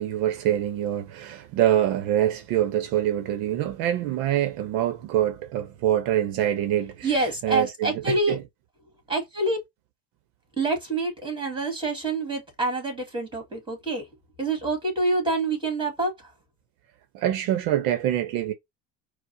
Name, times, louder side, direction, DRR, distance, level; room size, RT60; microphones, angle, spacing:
voice 1, 0.0-7.1 7.4-8.4 17.1-18.5, right 12 dB, 70° right, 0.7 m, -25 dB
voice 2, 7.0-8.4 9.1-9.6 10.6-14.1 14.4-16.3, right 2 dB, 15° right, 2.1 m, -26 dB
4.5 x 2.1 x 2.8 m
supercardioid pair, 105°, 36 cm